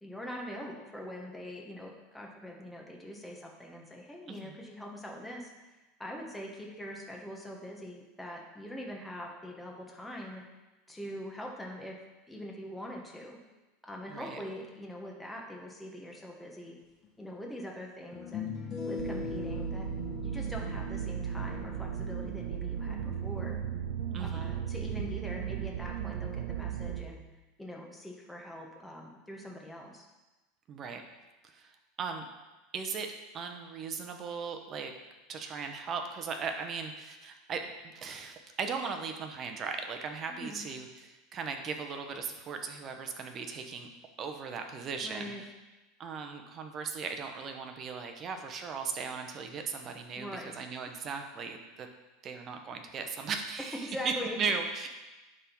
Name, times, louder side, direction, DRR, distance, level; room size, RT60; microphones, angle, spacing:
voice 1, 0.0-10.4 10.9-12.0 12.3-13.4 13.8-16.7 17.2-18.5 18.9-19.9 20.2-23.6 24.2-27.2 27.6-30.1 40.3-40.6 45.0-45.4 50.2-50.7 53.8-54.4, equal, 5° left, -1 dB, 1.2 m, -43 dB
sound 1, 17.0-17.1 18.1-23.4, left 6 dB, 30° left, 1.3 m, -41 dB
sound 2, 19.0-27.0, right 8 dB, 85° right, 0.7 m, -36 dB
voice 2, 24.1-24.5 30.7-31.0 31.4-31.7 32.0-32.2 32.7-34.9 35.3-43.9 44.2-45.3 46.0-51.9 52.2-54.9, right 5 dB, 35° right, 5 dB, 0.9 m, -37 dB
11.0 x 3.7 x 4.5 m, 1.1 s
supercardioid pair, 130°, 0 cm